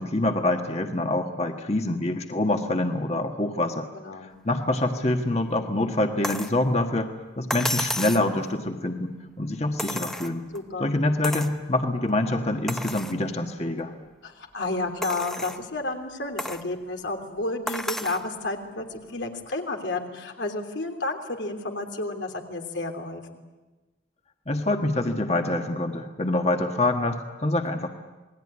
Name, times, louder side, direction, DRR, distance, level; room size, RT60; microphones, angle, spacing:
voice 1, 0.0-3.9 4.4-7.1 7.4-10.5 10.8-13.9 24.5-27.9, left 2 dB, 35° left, 4 dB, 1.6 m, -26 dB
voice 2, 3.9-4.3 10.5-11.0 14.2-23.2, left 2 dB, 85° left, 4 dB, 3.2 m, -31 dB
sound 1, 6.2-6.6 7.5-8.3 9.8-10.6 11.2-11.6 12.1-12.2 12.7-13.2 13.8-13.9 15.0-15.6 16.4-16.7 17.7-18.3 19.5-19.6, left 1 dB, ahead, 0.8 m, -31 dB
28.0 x 20.0 x 9.8 m, 1.2 s
head